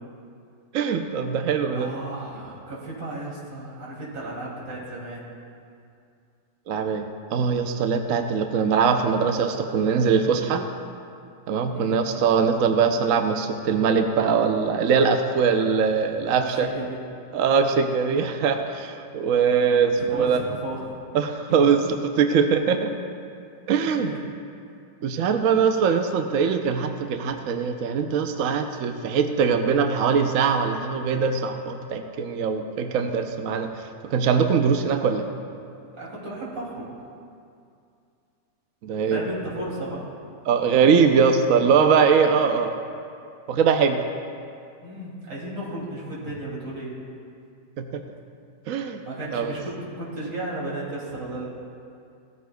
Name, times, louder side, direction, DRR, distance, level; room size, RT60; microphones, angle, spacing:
voice 1, 0.7-1.9 6.7-10.7 11.5-16.7 17.3-20.4 21.1-22.9 23.7-24.1 25.0-35.3 38.8-39.2 40.5-42.7 43.5-44.0 47.8-48.0 48.7-49.0 49.3-49.5, right 6 dB, 60° right, 6 dB, 0.9 m, -22 dB
voice 2, 1.7-5.3 11.7-12.1 16.5-16.9 20.0-20.9 23.9-24.2 35.9-36.9 39.1-40.0 44.8-46.9 49.0-51.5, right 1 dB, 85° right, -5 dB, 3.5 m, -34 dB
17.0 x 14.0 x 2.3 m, 2.4 s
omnidirectional pair, 1.8 m